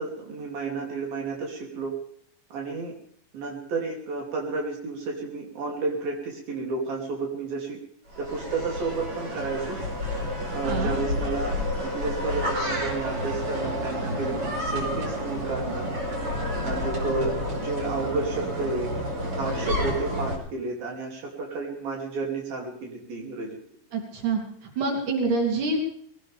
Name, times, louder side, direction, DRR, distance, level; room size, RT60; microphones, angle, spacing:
voice 1, 0.0-1.9 2.5-2.9 3.3-7.8 8.2-9.8 10.5-15.9 16.6-18.9 19.4-23.6, right 3 dB, 80° right, -1 dB, 4.9 m, -31 dB
sound 1, 8.1-20.4, left 1 dB, 40° right, 4.2 m, -30 dB
voice 2, 10.6-10.9 23.9-25.8, right 3 dB, 60° right, 1 dB, 4.8 m, -27 dB
21.5 x 18.0 x 3.6 m, 0.63 s
omnidirectional pair, 4.2 m